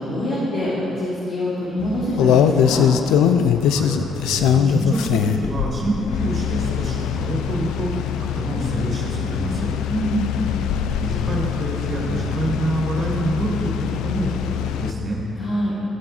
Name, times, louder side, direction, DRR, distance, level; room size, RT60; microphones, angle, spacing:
voice 1, 0.0-2.8 9.8-10.4 15.4-15.7, equal, 70° left, -9 dB, 2.7 m, -25 dB
sound 1, 1.8-14.9, left 8 dB, 85° left, 0.4 m, -22 dB
voice 2, 3.6-9.7 11.0-13.7 14.0-15.2, right 1 dB, 50° right, -4 dB, 2.5 m, -26 dB
14.0 x 7.8 x 4.3 m, 2.9 s
supercardioid pair, 70°, 0 cm